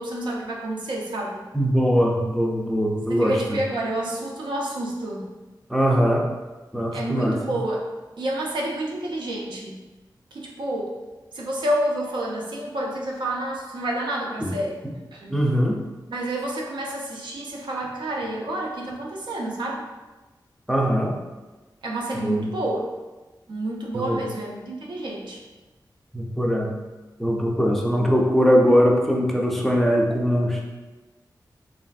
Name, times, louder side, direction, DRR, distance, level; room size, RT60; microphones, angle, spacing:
voice 1, 0.0-1.4 3.1-5.3 6.9-7.9 8.2-9.8 10.3-11.0 11.3-14.8 15.1-15.4 16.1-19.9 21.8-22.9 23.5-25.4, right 1 dB, 80° right, -2 dB, 0.5 m, -29 dB
voice 2, 1.5-3.6 5.7-6.3 6.7-7.4 14.4-14.5 15.3-15.8 20.7-21.2 22.1-22.5 23.9-24.2 26.1-26.7 27.2-30.6, equal, 5° left, -1 dB, 0.3 m, -21 dB
3.2 x 2.4 x 2.2 m, 1.2 s
wide cardioid pair, 130°, 8 cm